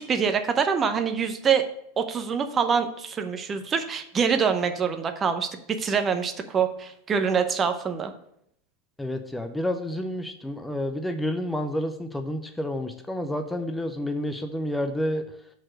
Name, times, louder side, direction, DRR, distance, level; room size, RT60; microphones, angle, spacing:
voice 1, 0.0-1.6 2.0-5.5 5.8-8.1, right 6 dB, 25° right, 7 dB, 0.7 m, -25 dB
voice 2, 9.0-15.2, left 1 dB, 5° left, 7 dB, 0.6 m, -29 dB
6.0 x 4.3 x 6.2 m, 0.72 s
figure-of-eight pair, 90°, 0 cm